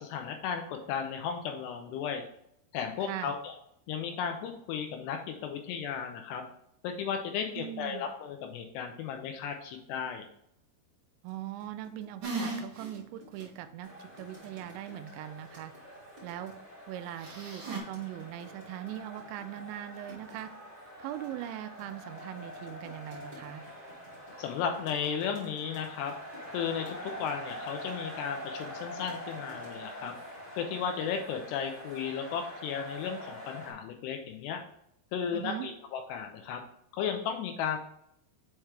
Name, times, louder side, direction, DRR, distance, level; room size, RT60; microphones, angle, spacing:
voice 1, 0.0-2.2 2.7-3.5 3.9-6.4 6.8-10.3 24.4-26.1 26.5-30.1 30.6-34.6 35.1-36.6 36.9-37.8, left 7 dB, 80° left, 5 dB, 2.5 m, -35 dB
voice 2, 3.0-3.3 7.6-8.1 11.2-15.7 16.2-16.5 16.9-20.5 21.0-23.6 35.3-35.7, right 12 dB, 85° right, 10 dB, 2.8 m, -40 dB
sound 1, 11.3-11.4 11.6-16.6 17.3-19.7 20.1-20.4 21.1-29.8 30.1-30.5, left 1 dB, 30° right, 0.9 m, -55 dB
sound 2, 12.2-12.9 13.4-13.5 17.2-17.8, right 3 dB, 65° right, 1.1 m, -36 dB
sound 3, 13.8-33.7, equal, 10° left, 0.8 m, -45 dB
7.3 x 4.6 x 3.3 m, 0.74 s
omnidirectional pair, 5.2 m